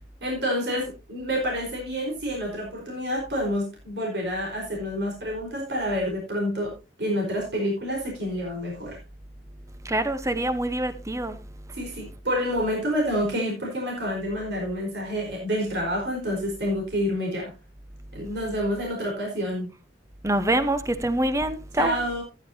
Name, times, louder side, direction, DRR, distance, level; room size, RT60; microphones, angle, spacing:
voice 1, 0.2-6.7 7.0-9.0 11.7-17.5 18.1-19.7 21.8-22.2, equal, 70° right, 4.7 m, -28 dB
voice 2, 9.8-11.4 20.2-22.0, right 1 dB, 20° right, 1.0 m, -25 dB
13.5 x 10.5 x 2.8 m
head